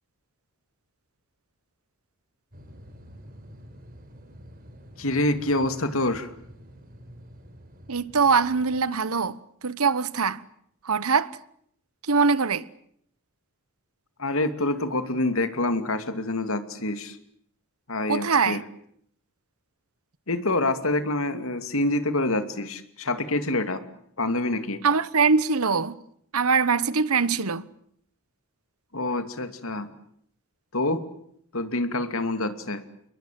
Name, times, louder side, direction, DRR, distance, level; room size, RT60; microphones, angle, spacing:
sound 1, 2.5-8.9, equal, 40° right, 4.1 m, -48 dB
voice 1, 5.0-6.3 14.2-17.2 17.9-18.6 20.3-23.8 24.2-24.8 28.9-29.9 30.7-31.0 31.5-32.8, left 2 dB, 70° left, 2.6 m, -26 dB
voice 2, 7.9-9.4 9.6-10.4 10.8-11.3 12.1-12.6 18.1-18.6 24.8-26.0 26.3-27.6, right 5 dB, 90° right, 1.1 m, -22 dB
28.5 x 22.0 x 7.7 m
head